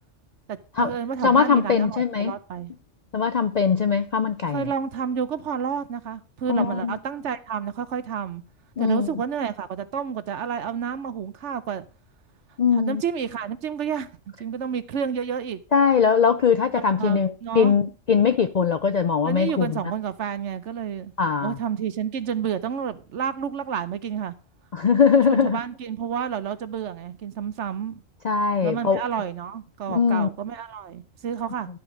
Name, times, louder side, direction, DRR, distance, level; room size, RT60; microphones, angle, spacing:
voice 1, 0.5-2.7 4.5-8.4 8.8-11.9 12.7-14.1 14.4-15.6 16.8-17.8 19.2-21.1 21.4-24.3 25.1-28.0 28.6-31.7, right 7 dB, 70° right, 1.1 m, -30 dB
voice 2, 1.2-2.3 3.1-4.7 6.5-7.0 8.8-9.1 12.6-13.0 15.7-19.8 21.2-21.6 24.7-25.6 28.2-29.0 29.9-30.3, left 6 dB, 55° left, 0.4 m, -21 dB
12.0 x 5.0 x 6.3 m
omnidirectional pair, 1.3 m